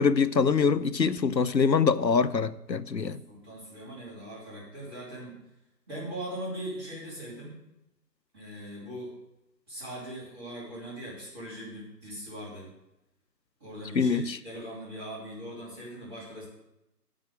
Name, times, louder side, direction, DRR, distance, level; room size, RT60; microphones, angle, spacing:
voice 1, 0.0-3.2 14.0-14.4, left 5 dB, 90° left, 16 dB, 0.8 m, -24 dB
voice 2, 3.3-5.4 5.9-7.6 8.3-9.1 9.7-12.7 13.6-16.5, right 1 dB, 15° right, -7 dB, 3.0 m, -40 dB
8.8 x 7.9 x 6.4 m, 0.87 s
figure-of-eight pair, 155°, 49 cm